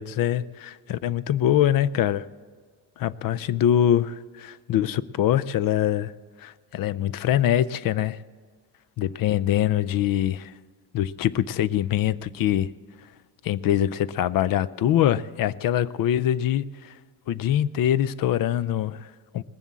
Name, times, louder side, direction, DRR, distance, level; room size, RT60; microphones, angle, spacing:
voice 1, 0.0-2.3 3.0-6.1 6.4-8.2 9.0-10.5 10.9-12.7 13.4-16.9 17.3-19.4, left 11 dB, 50° left, 19 dB, 0.5 m, -24 dB
20.0 x 7.2 x 7.3 m, 1.5 s
cardioid pair, 95°, 47 cm